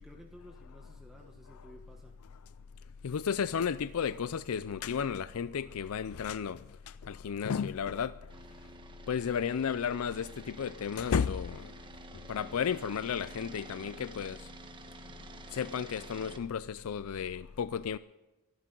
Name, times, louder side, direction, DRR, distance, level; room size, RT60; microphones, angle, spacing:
voice 1, 0.0-2.3, equal, ahead, 1.1 m, -54 dB
voice 2, 3.0-8.3 9.1-11.7 12.1-14.5 15.5-18.0, left 7 dB, 80° left, 0.4 m, -33 dB
sound 1, 8.3-16.4, right 3 dB, 20° right, 1.3 m, -50 dB
24.0 x 12.0 x 3.9 m
head